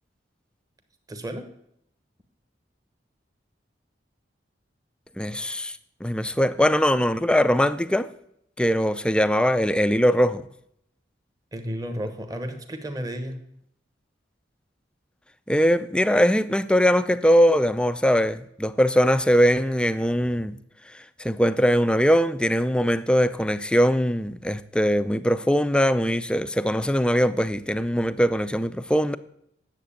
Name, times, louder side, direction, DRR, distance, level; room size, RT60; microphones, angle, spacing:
voice 1, 1.1-1.5 11.5-13.4, equal, 20° right, 1.1 m, -32 dB
voice 2, 5.2-8.1 8.6-10.4 15.5-20.6 21.2-29.2, equal, 5° left, 0.4 m, -21 dB
9.3 x 7.5 x 8.6 m
head